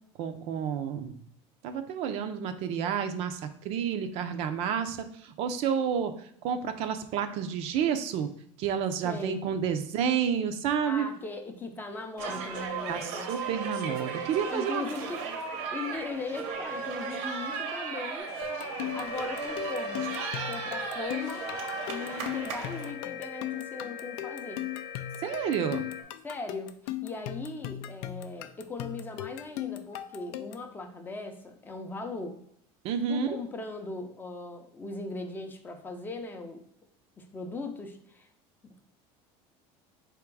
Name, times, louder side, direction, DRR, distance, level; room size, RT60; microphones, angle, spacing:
voice 1, 0.2-1.2 1.6-5.0 5.2-6.1 6.4-8.3 8.6-11.1 12.9-14.8 25.2-25.8 32.8-33.4, right 7 dB, 50° right, 8 dB, 0.5 m, -30 dB
voice 2, 9.0-9.4 10.8-13.3 14.5-15.2 15.7-18.3 18.9-21.5 21.9-24.6 26.2-32.4 33.1-36.6 37.2-38.3 38.6-38.9, left 3 dB, 15° left, 5 dB, 0.5 m, -39 dB
sound 1, 12.2-22.9, right 5 dB, 70° right, 0.9 m, -35 dB
sound 2, 18.2-26.0, left 8 dB, 55° left, 0.7 m, -42 dB
sound 3, 18.4-30.7, left 14 dB, 80° left, 0.4 m, -38 dB
3.5 x 2.9 x 4.6 m, 0.68 s
cardioid pair, 160°, 13 cm